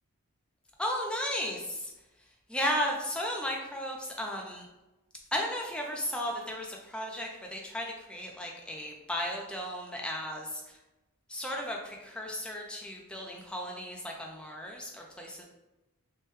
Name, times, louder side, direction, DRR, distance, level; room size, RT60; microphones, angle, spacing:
voice 1, 0.8-1.9 2.5-4.7 5.3-10.6 11.3-15.5, equal, 5° left, -1 dB, 0.3 m, -35 dB
3.1 x 2.1 x 3.2 m, 0.99 s
head